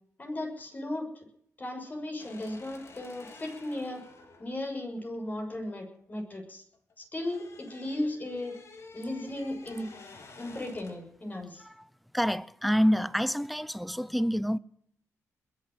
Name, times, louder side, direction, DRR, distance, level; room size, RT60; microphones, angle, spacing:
voice 1, 0.2-1.2 1.6-4.0 4.4-6.6 7.0-8.5 8.9-9.9 10.4-11.7, left 1 dB, 30° left, 6.3 m, -36 dB
sound 1, 2.2-6.4 6.7-11.1, left 3 dB, 55° left, 3.9 m, -51 dB
voice 2, 12.1-14.6, equal, ahead, 0.6 m, -27 dB
21.5 x 8.0 x 7.7 m
cardioid pair, 110°, 6 cm